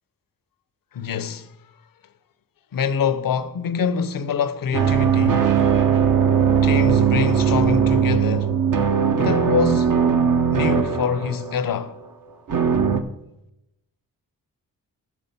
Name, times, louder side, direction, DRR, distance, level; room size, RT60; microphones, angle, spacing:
voice 1, 0.9-1.6 2.7-5.6 6.6-8.6 9.1-10.0 10.5-12.0, left 7 dB, 70° left, 0.8 m, -25 dB
sound 1, 4.7-11.8 12.5-13.0, right 7 dB, 60° right, 1.0 m, -19 dB
13.5 x 5.1 x 5.4 m
cardioid pair, 50°, 36 cm